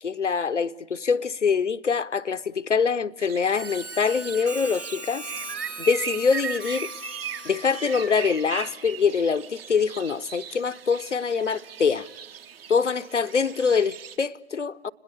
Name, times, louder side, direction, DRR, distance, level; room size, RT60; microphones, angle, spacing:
voice 1, 0.0-5.3 5.8-6.9 7.4-12.1 12.7-14.9, left 5 dB, 80° left, 0.8 m, -24 dB
sound 1, 3.2-14.2, right 8 dB, 55° right, 1.3 m, -38 dB
Harmonica, 3.5-8.7, right 2 dB, 80° right, 2.4 m, -39 dB
29.5 x 21.0 x 8.3 m
figure-of-eight pair, 120°, 35 cm